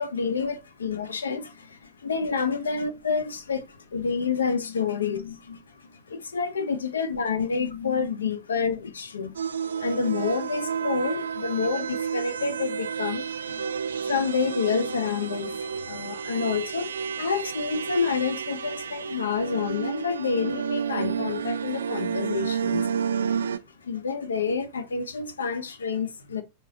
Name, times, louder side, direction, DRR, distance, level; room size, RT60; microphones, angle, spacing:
voice 1, 0.0-5.6 5.9-9.4 9.8-16.9 17.2-22.9 23.3-23.4 23.8-26.4, left 5 dB, 70° left, 0.7 m, -28 dB
sound 1, 9.3-23.6, right 7 dB, 70° right, 0.3 m, -31 dB
4.7 x 2.9 x 3.7 m
figure-of-eight pair, 90°, 0 cm